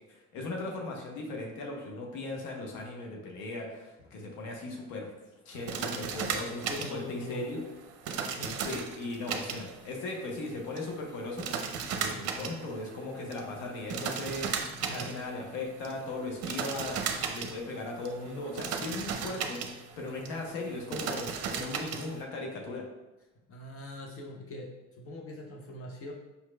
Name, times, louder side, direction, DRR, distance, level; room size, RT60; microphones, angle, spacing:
voice 1, 0.1-5.1 5.4-7.6 8.6-11.5 11.9-19.6 20.0-22.8, left 2 dB, 75° left, 0 dB, 1.0 m, -38 dB
sound 1, 5.5-22.2, right 6 dB, 50° right, 0.6 m, -37 dB
voice 2, 6.6-7.7 8.4-8.5 14.8-15.1 23.5-26.1, left 1 dB, 45° left, 0 dB, 0.7 m, -41 dB
5.4 x 3.0 x 2.2 m, 1.0 s
hypercardioid pair, 70°, 32 cm